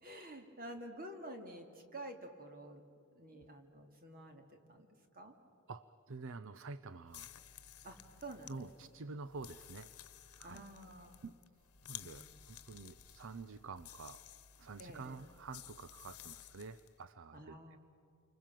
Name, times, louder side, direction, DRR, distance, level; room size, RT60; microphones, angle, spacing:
voice 1, 0.0-2.8 3.1-5.4 7.8-8.9 10.4-11.2 12.0-12.5 14.8-15.2 17.3-17.8, right 1 dB, 40° right, 5 dB, 2.8 m, -50 dB
voice 2, 5.7-7.3 8.5-9.9 10.4-10.6 11.2-11.3 11.8-14.3 14.6-17.8, right 4 dB, 60° right, 14 dB, 0.6 m, -48 dB
sound 1, 7.1-17.0, left 10 dB, 80° left, 1.1 m, -55 dB
29.0 x 25.0 x 7.6 m, 2.6 s
head